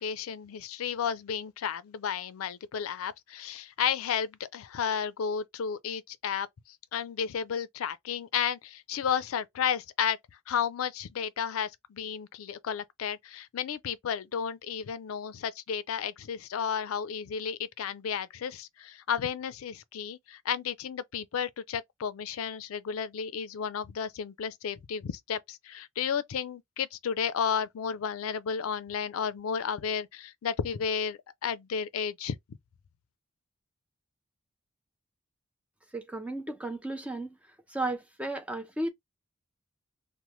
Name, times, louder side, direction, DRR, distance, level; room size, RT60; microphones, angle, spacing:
voice 1, 0.0-6.5 6.9-10.2 10.5-32.4, left 7 dB, 80° left, 0.4 m, -32 dB
voice 2, 35.9-37.4 37.7-38.9, right 2 dB, 5° right, 0.3 m, -34 dB
3.0 x 2.1 x 3.0 m
head